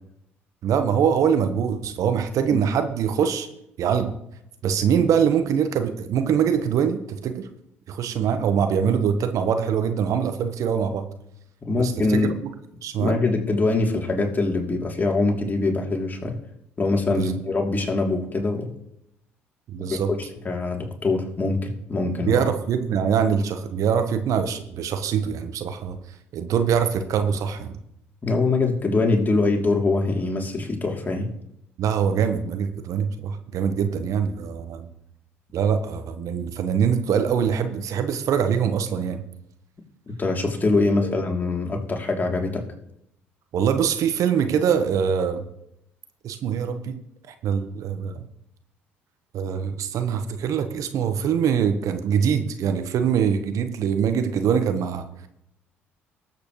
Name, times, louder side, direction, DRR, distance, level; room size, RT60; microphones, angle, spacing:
voice 1, 0.6-3.5 3.8-4.2 4.6-7.5 7.9-11.1 11.7-12.2 12.8-13.1 17.1-17.3 19.7-20.1 22.2-26.0 26.3-27.8 31.8-34.9 35.5-39.2 43.5-45.4 46.2-47.0 47.3-48.2 49.3-55.1, right 7 dB, 55° right, 8 dB, 1.2 m, -23 dB
voice 2, 11.6-12.3 13.0-16.4 16.8-18.7 19.9-22.4 28.2-31.3 40.2-42.6, left 3 dB, 30° left, 1 dB, 3.0 m, -23 dB
19.5 x 8.1 x 3.2 m, 0.79 s
hypercardioid pair, 55°, 7 cm